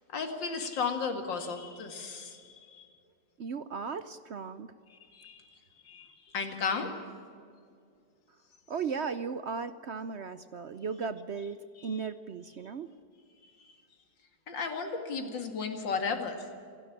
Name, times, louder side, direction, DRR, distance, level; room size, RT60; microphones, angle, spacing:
voice 1, 0.1-2.9 4.9-6.9 11.8-11.9 13.6-13.8 14.5-16.5, left 5 dB, 80° left, 5 dB, 2.8 m, -35 dB
voice 2, 3.4-4.7 8.7-12.9, right 5 dB, 65° right, 13 dB, 0.7 m, -36 dB
27.5 x 12.0 x 10.0 m, 2.4 s
omnidirectional pair, 2.0 m